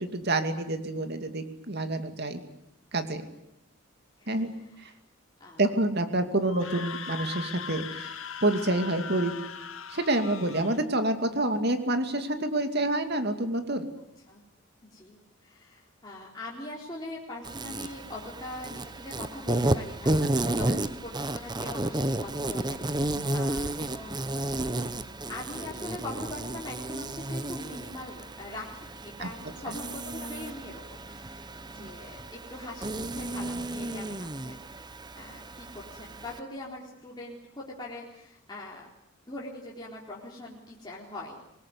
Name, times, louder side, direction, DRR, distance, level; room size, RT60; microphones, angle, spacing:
voice 1, 0.0-2.4 2.9-3.3 4.3-4.5 5.6-8.2 8.4-9.3 9.9-13.9 20.4-20.8 23.1-23.3 29.2-29.3 31.8-31.9, right 2 dB, 50° right, 8 dB, 2.5 m, -28 dB
voice 2, 4.2-5.0 5.4-5.7 14.0-14.4 14.9-25.0 25.3-38.9 39.3-41.4, left 2 dB, 20° left, -4 dB, 4.0 m, -42 dB
Screaming, 6.4-10.8, left 6 dB, 70° left, 2.2 m, -39 dB
Insect, 17.4-36.4, right 1 dB, 20° right, 1.0 m, -32 dB
25.5 x 20.5 x 9.7 m, 0.83 s
head